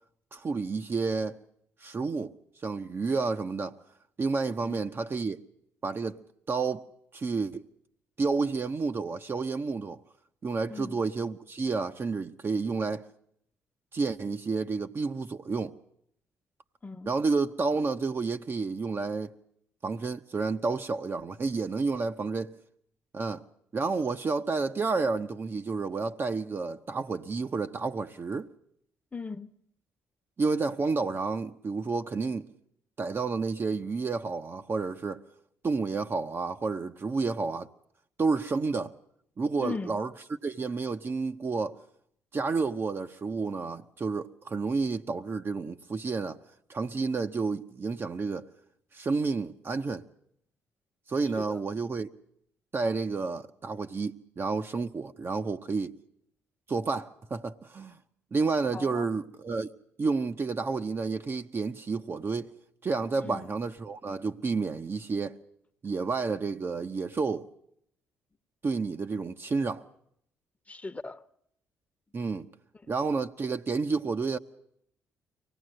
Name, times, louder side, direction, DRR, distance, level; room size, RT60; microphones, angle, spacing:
voice 1, 0.3-1.4 1.8-2.3 2.6-3.8 4.2-5.4 5.8-6.2 6.5-6.9 7.1-7.7 8.2-10.0 10.4-13.1 13.9-15.7 17.1-19.3 19.8-22.5 23.1-23.4 23.7-28.5 30.4-32.5 33.0-35.2 35.6-37.7 38.2-38.9 39.4-40.1 40.4-41.8 42.3-46.4 46.7-48.4 48.9-50.0 51.1-52.1 52.7-56.0 56.7-58.0 58.3-59.7 60.0-62.5 62.8-65.4 65.8-67.5 68.6-69.8 72.1-72.5 72.9-74.4, right 4 dB, 40° right, 0.9 m, -30 dB
voice 2, 29.1-29.5 39.6-40.0 51.4-51.6 58.7-59.1 63.2-63.5 70.7-71.3, left 4 dB, 20° left, 1.1 m, -38 dB
24.0 x 18.0 x 7.7 m
hypercardioid pair, 50°, 6 cm